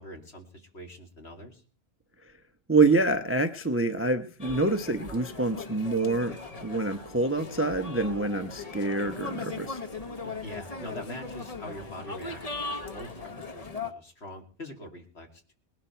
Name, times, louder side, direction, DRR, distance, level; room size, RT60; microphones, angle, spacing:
voice 1, 0.0-1.6 10.2-15.5, left 1 dB, 50° left, 2 dB, 3.0 m, -44 dB
voice 2, 2.7-9.8, right 3 dB, 10° right, 8 dB, 0.7 m, -26 dB
sound 1, 4.4-13.9, left 3 dB, 30° left, 1.0 m, -39 dB
sound 2, 6.2-13.6, left 2 dB, 75° left, 4.7 m, -52 dB
20.5 x 11.5 x 4.5 m, 0.42 s
omnidirectional pair, 1.4 m